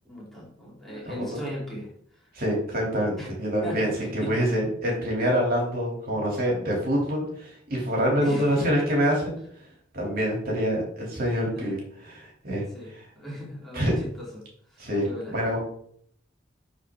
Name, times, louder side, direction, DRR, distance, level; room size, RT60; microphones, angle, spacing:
voice 1, 0.1-1.9 3.2-3.3 3.6-3.9 4.2-4.3 6.1-6.2 8.2-8.7 11.5-11.7 12.7-14.4 14.7-15.3, left 1 dB, ahead, -6 dB, 3.2 m, -37 dB
voice 2, 0.9-1.4 2.3-9.4 9.9-13.0 13.7-13.9 14.8-15.6, equal, 50° right, -2 dB, 2.9 m, -26 dB
12.0 x 4.3 x 3.7 m, 0.63 s
head